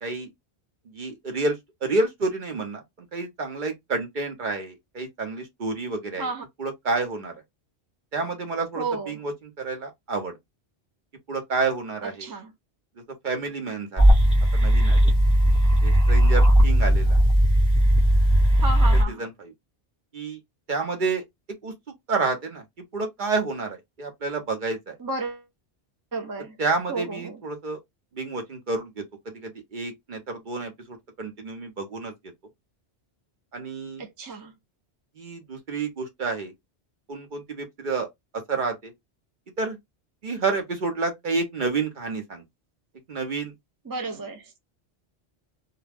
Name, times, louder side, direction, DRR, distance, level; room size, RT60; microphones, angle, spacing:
voice 1, 0.9-2.8 3.1-6.3 6.6-7.3 8.1-10.4 11.3-12.3 13.2-14.1 14.5-15.1 15.8-17.2 19.2-19.5 20.1-20.4 20.7-21.2 21.6-21.7 22.1-22.6 22.9-25.0 26.6-27.8 28.1-32.1 33.5-34.0 35.2-36.5 37.1-38.1 38.5-38.9 39.6-39.8 40.2-42.4 43.1-43.5, right 3 dB, 50° right, 0.8 m, -29 dB
voice 2, 8.8-9.2 12.0-12.5 18.6-19.3 25.0-25.5 26.1-26.6 26.9-27.4 34.0-34.5 43.8-44.5, right 3 dB, 30° right, 0.4 m, -32 dB
sound 1, 14.0-19.0, equal, 5° left, 0.7 m, -17 dB
2.3 x 2.2 x 3.3 m
omnidirectional pair, 1.1 m